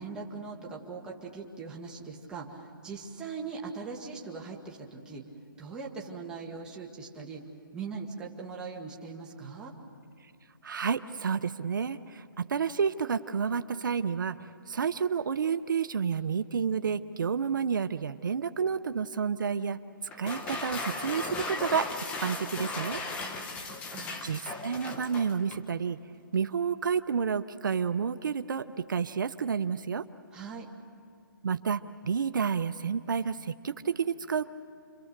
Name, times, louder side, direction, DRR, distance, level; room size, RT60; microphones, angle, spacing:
voice 1, 0.0-5.2 5.6-7.4 7.7-9.7 23.1-24.2 30.3-30.7, right 4 dB, 5° right, -2 dB, 1.4 m, -41 dB
voice 2, 10.6-14.4 14.7-19.8 20.2-21.9 22.2-23.0 24.2-26.0 26.3-30.0 31.4-34.5, right 6 dB, 65° right, 11 dB, 0.7 m, -30 dB
sound 1, 20.1-25.7, left 3 dB, 10° left, 1.0 m, -36 dB
29.0 x 23.5 x 6.6 m, 2.5 s
hypercardioid pair, 165°, 12 cm